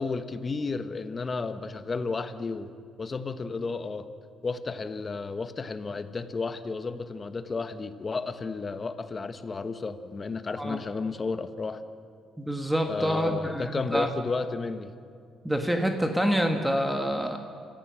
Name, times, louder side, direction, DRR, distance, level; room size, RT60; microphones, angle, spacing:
voice 1, 0.0-2.7 3.0-4.1 4.4-11.8 12.9-14.9, left 4 dB, 35° left, 10 dB, 1.2 m, -32 dB
voice 2, 12.4-14.1 15.4-17.4, equal, 5° right, 4 dB, 1.7 m, -27 dB
28.5 x 14.5 x 6.4 m, 2.3 s
cardioid pair, 90°, 0 cm